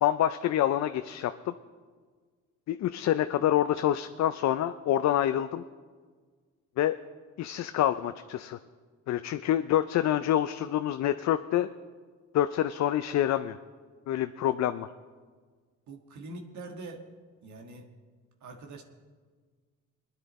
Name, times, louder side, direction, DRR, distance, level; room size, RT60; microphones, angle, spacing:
voice 1, 0.0-1.5 2.7-5.6 6.8-7.0 7.4-8.6 9.1-11.7 12.3-13.6 14.1-14.9, left 11 dB, 65° left, 10 dB, 0.5 m, -27 dB
voice 2, 15.9-17.0 17.4-17.9 18.4-18.8, right 2 dB, 70° right, 2 dB, 1.6 m, -43 dB
21.0 x 10.0 x 4.1 m, 1.5 s
cardioid pair, 90°, 30 cm